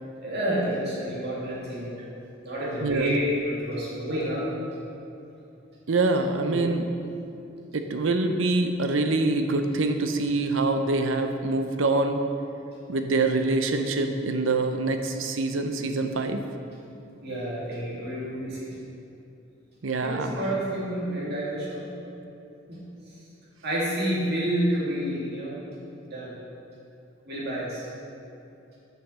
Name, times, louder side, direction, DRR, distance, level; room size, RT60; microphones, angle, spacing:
voice 1, 0.2-1.9 2.4-4.4 6.4-6.6 17.2-18.8 20.0-21.9 22.7-22.8 23.6-25.5 26.1-26.3 27.3-27.8, equal, 55° right, -6 dB, 2.3 m, -29 dB
voice 2, 2.8-3.1 5.9-6.9 7.7-12.2 12.9-16.4 19.8-20.4, right 3 dB, 70° right, 6 dB, 0.7 m, -25 dB
7.0 x 5.8 x 7.0 m, 2.8 s
head